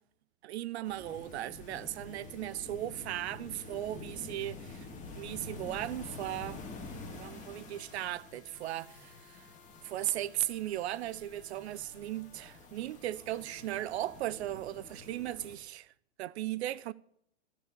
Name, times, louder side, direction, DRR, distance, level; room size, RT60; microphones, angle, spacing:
voice 1, 0.4-4.9 5.2-6.6 7.1-9.5 9.8-15.9 16.2-16.9, right 14 dB, 75° right, 0.5 m, -37 dB
sound 1, 0.8-15.6, left 3 dB, 20° left, 2.1 m, -48 dB
sound 2, 5.4-14.2, left 4 dB, 45° left, 2.0 m, -59 dB
14.0 x 4.6 x 8.3 m
hypercardioid pair, 125°, 33 cm